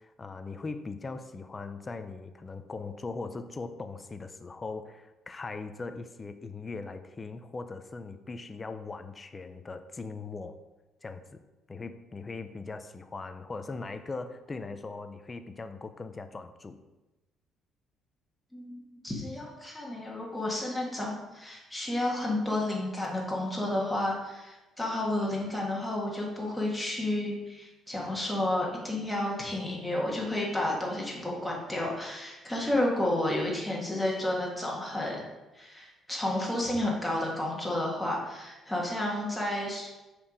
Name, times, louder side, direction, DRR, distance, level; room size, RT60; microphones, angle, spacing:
voice 1, 0.0-10.6 11.0-11.4 11.7-16.8, left 3 dB, 20° left, 9 dB, 0.5 m, -40 dB
voice 2, 18.5-35.2 35.5-39.9, left 1 dB, 5° left, -3 dB, 1.7 m, -31 dB
7.2 x 4.5 x 5.1 m, 1.1 s
cardioid pair, 145°, 0 cm